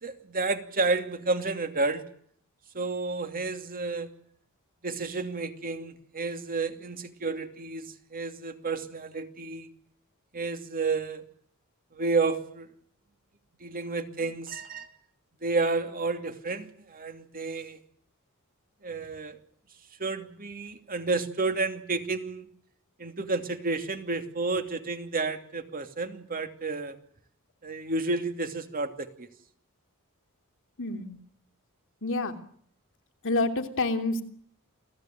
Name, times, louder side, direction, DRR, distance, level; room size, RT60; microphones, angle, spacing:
voice 1, 0.0-2.0 2.7-4.1 4.8-9.7 10.3-11.2 11.9-12.7 13.6-14.9 15.4-17.8 18.8-19.4 20.0-22.5 23.0-27.0 27.6-29.3, right 3 dB, 40° right, 7 dB, 2.8 m, -31 dB
voice 2, 30.8-31.2 32.0-32.4 33.2-34.2, left 2 dB, 60° left, 5 dB, 3.2 m, -28 dB
29.0 x 18.5 x 9.3 m, 0.62 s
head